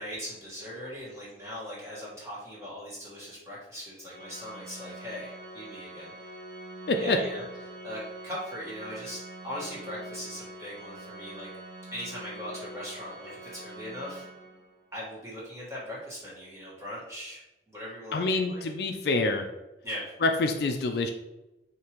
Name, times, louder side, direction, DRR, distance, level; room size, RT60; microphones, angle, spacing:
voice 1, 0.0-6.1 7.0-7.4 7.8-11.5 11.9-14.3 14.9-17.4 17.7-18.6 19.8-20.1, equal, 15° right, -7 dB, 1.4 m, -39 dB
Organ, 4.0-14.9, right 2 dB, 70° right, 1.3 m, -45 dB
voice 2, 18.1-19.5 20.2-21.1, left 3 dB, 60° left, 5 dB, 0.4 m, -26 dB
5.1 x 2.8 x 2.9 m, 1.0 s
head